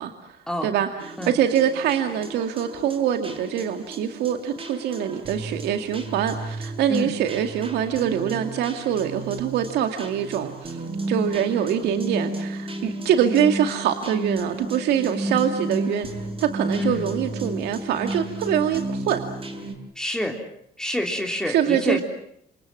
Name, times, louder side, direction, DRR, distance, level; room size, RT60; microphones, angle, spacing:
voice 1, 0.0-0.4 0.6-16.1 16.4-19.2 21.4-22.0, right 9 dB, 80° right, 6 dB, 2.3 m, -24 dB
sound 1, 1.0-19.7, right 1 dB, 35° right, 7.4 m, -33 dB
voice 2, 16.8-17.1 20.0-20.4 20.8-22.0, left 1 dB, 5° left, 3 dB, 3.5 m, -27 dB
28.0 x 27.5 x 7.6 m, 0.71 s
cardioid pair, 110°, 17 cm